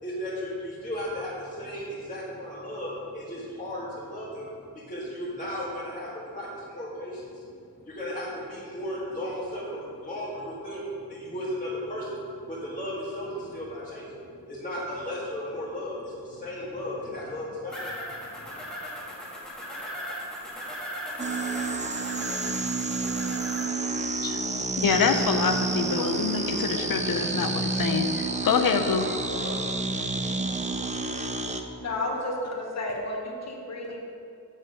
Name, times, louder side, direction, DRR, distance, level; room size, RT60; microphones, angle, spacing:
voice 1, 0.0-7.5 7.8-18.6 28.9-30.1, left 1 dB, 20° left, -9 dB, 1.6 m, -35 dB
sound 1, 17.7-23.6, equal, ahead, 1.8 m, -37 dB
sound 2, 21.2-31.6, right 3 dB, 20° right, 0.5 m, -29 dB
voice 2, 24.8-29.1, left 6 dB, 65° left, 7 dB, 0.7 m, -26 dB
voice 3, 31.5-34.0, left 2 dB, 45° left, -1 dB, 1.2 m, -32 dB
7.5 x 6.6 x 5.5 m, 2.4 s
wide cardioid pair, 145°, 37 cm